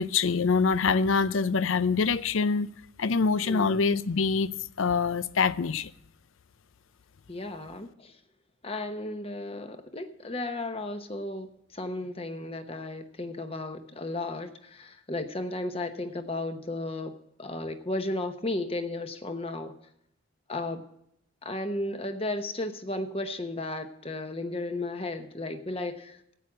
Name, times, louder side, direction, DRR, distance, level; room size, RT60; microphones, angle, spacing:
voice 1, 0.0-2.7 3.0-5.9, left 5 dB, 75° left, 0.6 m, -25 dB
voice 2, 7.3-8.2 8.6-17.1 17.4-19.7 20.5-20.8 21.4-26.3, left 2 dB, 30° left, 1.0 m, -34 dB
13.5 x 8.7 x 6.1 m
head